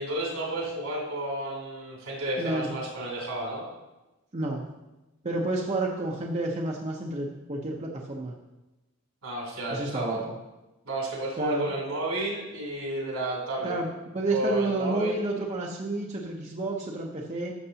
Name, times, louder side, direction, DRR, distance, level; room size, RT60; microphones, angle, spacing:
voice 1, 0.0-3.7 9.2-10.2 10.8-13.7 14.3-15.2, right 1 dB, 80° right, -3 dB, 3.1 m, -31 dB
voice 2, 2.4-2.7 4.3-4.6 5.2-8.4 9.7-10.3 11.4-11.7 13.6-17.5, right 2 dB, 30° right, -1 dB, 0.7 m, -30 dB
12.5 x 6.6 x 2.8 m, 1.0 s
head